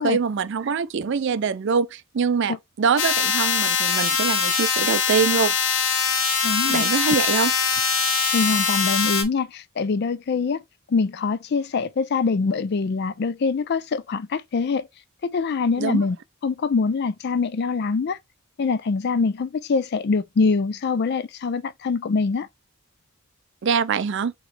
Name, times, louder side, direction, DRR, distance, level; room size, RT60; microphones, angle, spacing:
voice 1, 0.0-5.6 6.7-7.5 15.8-16.0 23.6-24.3, right 6 dB, 55° right, 0.4 m, -24 dB
sound 1, 3.0-9.2, left 6 dB, 65° left, 1.0 m, -22 dB
voice 2, 6.4-6.8 8.3-10.6 10.9-14.9 15.2-16.2 16.4-18.2 18.6-22.5, left 4 dB, 50° left, 0.4 m, -24 dB
5.0 x 3.0 x 3.2 m
head